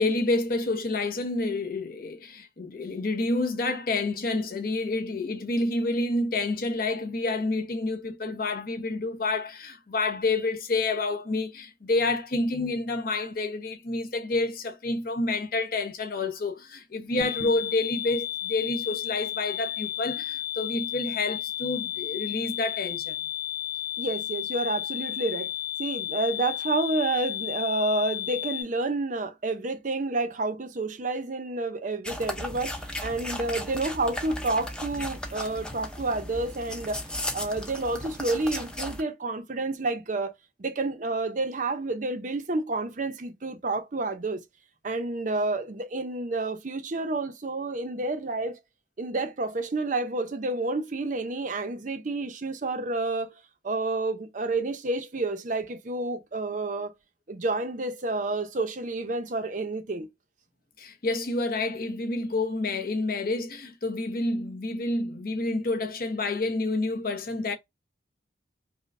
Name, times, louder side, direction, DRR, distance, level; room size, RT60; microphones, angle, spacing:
voice 1, 0.0-23.2 60.8-67.5, left 2 dB, 50° left, 0.8 m, -28 dB
sound 1, 17.2-28.6, left 13 dB, 30° left, 1.7 m, -33 dB
voice 2, 24.0-25.5 25.8-32.7 33.0-37.0 37.3-40.3 40.6-44.4 44.8-48.6 49.0-53.3 53.6-56.9 57.3-60.1, right 2 dB, 45° right, 0.6 m, -29 dB
sound 2, 32.0-39.0, left 1 dB, 5° left, 0.5 m, -36 dB
5.1 x 2.2 x 2.5 m
head